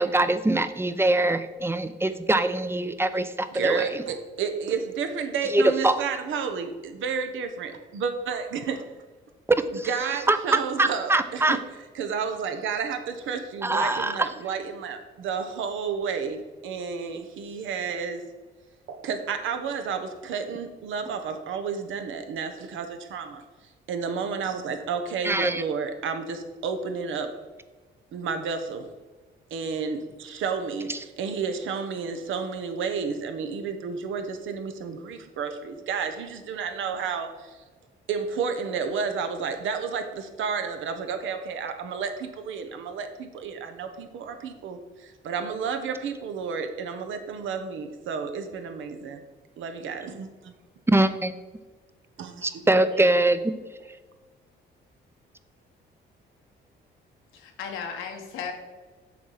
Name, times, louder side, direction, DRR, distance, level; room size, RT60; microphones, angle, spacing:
voice 1, 0.0-4.0 5.5-6.0 9.7-9.9 10.3-11.6 13.6-14.1 25.2-25.6 50.9-51.3 52.4-53.5, right 2 dB, 10° right, 11 dB, 0.6 m, -23 dB
voice 2, 3.5-8.8 9.8-11.6 11.9-18.2 18.9-23.4 23.9-27.3 28.1-28.9 29.5-37.6 38.1-49.2 49.6-50.5 52.2-52.6, right 6 dB, 80° right, 7 dB, 1.0 m, -31 dB
voice 3, 57.3-58.5, left 6 dB, 90° left, 3 dB, 1.4 m, -35 dB
7.2 x 4.2 x 6.4 m, 1.3 s
cardioid pair, 90°, 20 cm